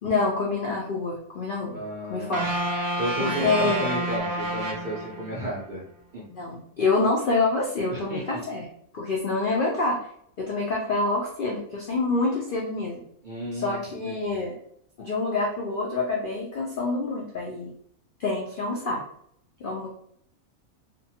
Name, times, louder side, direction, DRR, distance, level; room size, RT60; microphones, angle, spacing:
voice 1, 0.0-1.8 2.1-2.5 3.2-3.9 6.3-8.7 8.9-10.1 10.4-13.0 13.5-14.5 15.0-17.7 18.2-19.0 19.6-19.9, left 3 dB, 90° left, -3 dB, 0.4 m, -27 dB
voice 2, 1.7-2.4 3.0-5.9 6.1-6.2 7.9-8.4 13.2-13.8 14.1-14.4, right 1 dB, 65° right, -6 dB, 0.4 m, -33 dB
sound 1, 2.3-5.6, right 1 dB, 85° right, 1.0 m, -29 dB
2.5 x 2.2 x 2.7 m, 0.69 s
omnidirectional pair, 1.5 m